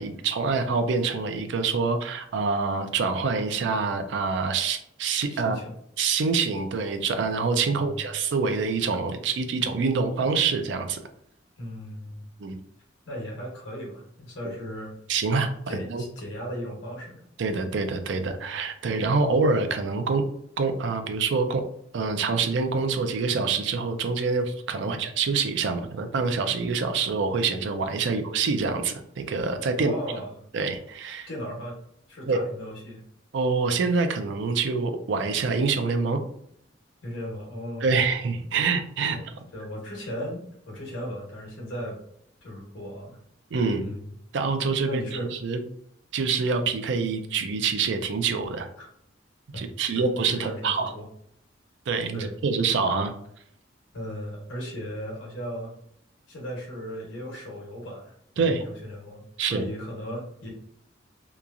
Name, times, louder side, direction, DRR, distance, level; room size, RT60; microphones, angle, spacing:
voice 1, 0.0-5.6 6.0-11.0 12.4-12.6 15.1-15.5 15.9-16.0 17.4-20.2 20.6-21.6 21.9-29.9 30.5-31.3 32.3-32.4 33.3-36.2 37.8-39.2 43.5-43.8 44.3-45.6 46.1-48.7 49.6-50.9 51.9-53.1 58.4-58.6 59.4-59.6, right 4 dB, 70° right, 7 dB, 0.4 m, -26 dB
voice 2, 5.3-5.7 7.7-8.1 11.6-12.3 13.1-14.9 15.7-17.2 18.1-18.5 24.8-25.1 28.1-28.2 29.8-30.3 31.3-31.8 32.1-33.0 37.0-38.0 39.1-42.0 42.4-43.2 43.8-44.1 44.8-45.3 48.8-48.9 49.5-51.1 52.1-52.3 53.9-55.7 56.3-60.5, equal, 90° left, -2 dB, 1.2 m, -37 dB
2.9 x 2.3 x 2.4 m, 0.70 s
head